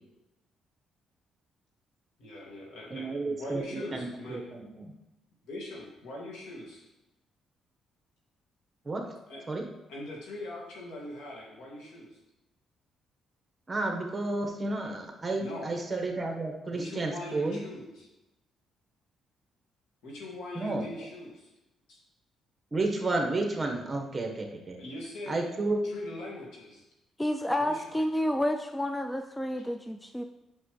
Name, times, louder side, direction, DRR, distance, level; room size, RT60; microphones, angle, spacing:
voice 1, 2.2-4.4 5.5-6.8 9.3-9.5 9.9-12.2 15.4-15.8 16.7-18.1 20.0-21.5 21.9-22.0 24.8-25.5 25.8-26.8 27.6-27.8 29.6-29.7, left 1 dB, 85° left, -3 dB, 2.4 m, -42 dB
voice 2, 2.9-4.9 8.8-9.0 9.5-9.6 13.7-17.6 20.5-20.8 22.7-24.8 25.3-25.8, right 2 dB, 25° right, 2 dB, 1.4 m, -31 dB
voice 3, 27.2-30.2, left 1 dB, 10° left, 5 dB, 0.4 m, -30 dB
8.3 x 6.2 x 3.3 m, 0.97 s
cardioid pair, 90°, 0 cm